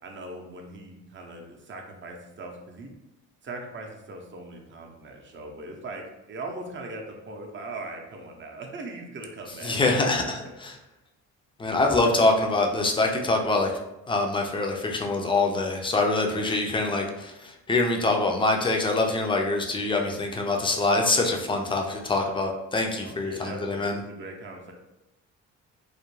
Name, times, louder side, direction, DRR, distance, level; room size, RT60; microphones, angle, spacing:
voice 1, 0.0-2.9 3.4-9.8 23.0-24.7, right 2 dB, 40° right, 2 dB, 0.6 m, -40 dB
voice 2, 9.6-10.8 11.6-13.7 14.1-24.0, left 2 dB, 15° left, 2 dB, 0.4 m, -24 dB
2.4 x 2.1 x 3.0 m, 0.95 s
cardioid pair, 90°, 30 cm